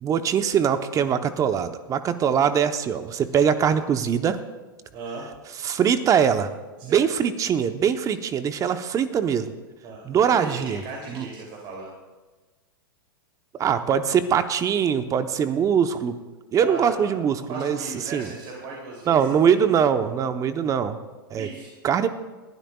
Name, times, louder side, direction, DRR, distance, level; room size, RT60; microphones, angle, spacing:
voice 1, 0.0-4.4 5.6-6.5 6.8-9.5 10.0-10.8 11.1-11.2 13.6-16.2 16.5-17.8 18.1-18.3 19.1-21.0 21.3-21.5 21.8-22.1, right 8 dB, 30° right, 10 dB, 0.9 m, -22 dB
voice 2, 4.9-5.3 6.8-7.1 9.8-11.9 16.6-17.2 17.5-19.8 21.4-21.7, right 3 dB, 45° right, -2 dB, 3.0 m, -37 dB
20.5 x 12.0 x 2.4 m, 1.2 s
hypercardioid pair, 105°, 12 cm